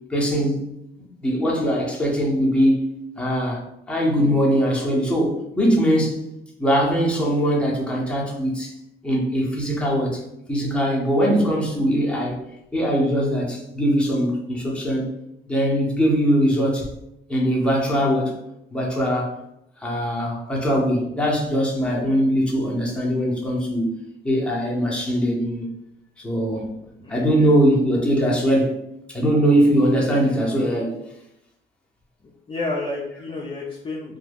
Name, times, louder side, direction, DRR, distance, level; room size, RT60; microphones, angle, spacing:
voice 1, 0.1-0.6 1.0-2.8 3.2-6.3 6.6-8.7 9.0-10.2 10.5-12.4 12.7-15.1 15.5-16.9 17.3-18.4 18.7-19.4 19.8-23.9 24.2-25.7 26.2-26.7 27.1-28.7 29.1-31.0, equal, 5° left, -3 dB, 0.8 m, -21 dB
voice 2, 26.3-27.5 32.2-34.2, left 2 dB, 25° left, -4 dB, 0.5 m, -32 dB
2.3 x 2.2 x 3.4 m, 0.83 s
cardioid pair, 90°, 20 cm